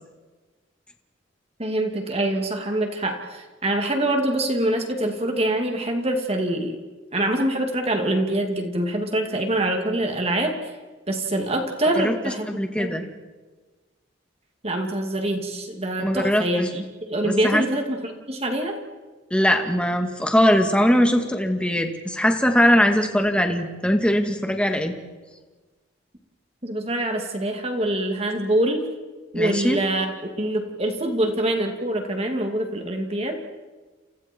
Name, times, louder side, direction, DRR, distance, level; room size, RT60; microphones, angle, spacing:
voice 1, 1.6-6.8 7.1-10.7 11.1-12.5 12.8-13.0 14.6-18.8 26.6-28.8 29.3-30.1 30.4-33.4, right 1 dB, 30° right, 3 dB, 2.5 m, -25 dB
voice 2, 11.9-13.0 16.0-16.7 17.2-17.6 19.3-24.9 29.3-29.8, equal, 5° left, 4 dB, 2.1 m, -21 dB
29.5 x 29.5 x 4.6 m, 1.3 s
head